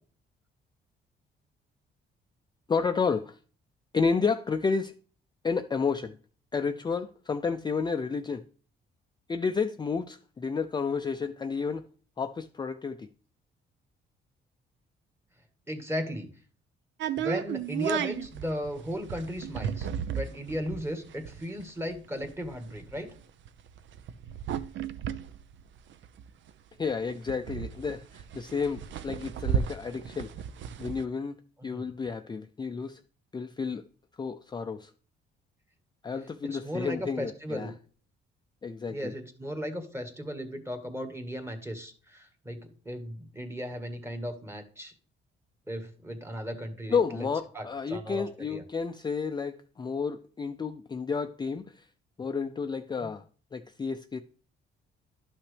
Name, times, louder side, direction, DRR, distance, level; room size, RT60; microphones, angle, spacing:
voice 1, 2.7-3.4 3.9-4.9 5.4-6.2 6.5-8.4 9.3-11.8 12.2-13.1 26.8-30.3 30.8-31.4 31.6-33.0 33.3-33.8 34.2-34.9 36.0-37.7 38.6-39.1 46.9-51.9 52.2-53.2 53.5-54.2, left 5 dB, 20° left, 0.4 m, -31 dB
voice 2, 15.7-16.3 17.2-23.1 31.7-31.8 36.4-37.7 38.9-42.6 42.8-44.9 45.7-47.3 47.5-48.6 53.0-53.1, equal, 10° right, 1.6 m, -36 dB
sound 1, 17.0-26.5 26.8-26.9 27.1-31.0, right 8 dB, 70° right, 0.6 m, -34 dB
11.5 x 5.8 x 3.3 m
cardioid pair, 90°, 20 cm